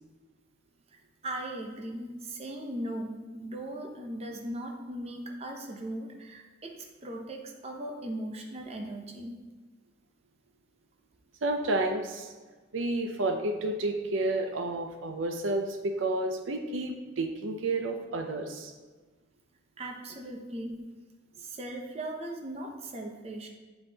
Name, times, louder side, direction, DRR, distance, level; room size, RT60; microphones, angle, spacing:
voice 1, 0.9-9.4 19.8-20.9 21.4-23.5, right 1 dB, 30° right, 2 dB, 0.7 m, -38 dB
voice 2, 11.4-12.3 12.7-18.7, right 2 dB, 85° right, 5 dB, 0.6 m, -30 dB
8.0 x 5.5 x 2.9 m, 1.3 s
head